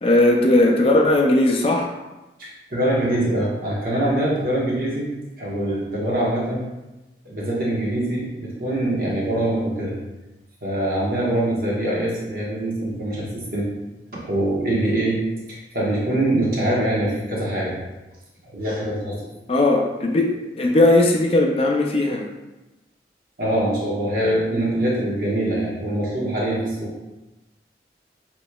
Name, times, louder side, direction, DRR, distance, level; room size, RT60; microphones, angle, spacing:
voice 1, 0.0-1.9 19.5-22.2, left 2 dB, 35° left, 1 dB, 0.4 m, -18 dB
voice 2, 2.4-6.7 7.2-10.0 10.6-13.7 14.1-17.8 18.5-19.2 23.4-26.9, right 1 dB, 50° right, -5 dB, 1.2 m, -24 dB
6.0 x 3.1 x 2.3 m, 1.0 s
head